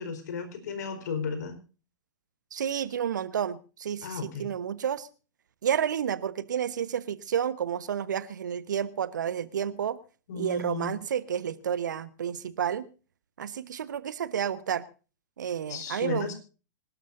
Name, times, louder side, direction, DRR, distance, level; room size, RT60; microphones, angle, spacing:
voice 1, 0.0-1.6 4.0-4.5 10.3-10.9 15.7-16.3, left 5 dB, 60° left, 9 dB, 4.6 m, -34 dB
voice 2, 2.5-5.1 5.6-10.0 10.3-12.9 13.4-14.8 15.4-16.3, right 8 dB, 65° right, 16 dB, 1.2 m, -30 dB
26.0 x 12.5 x 2.6 m, 0.35 s
figure-of-eight pair, 100°, 10 cm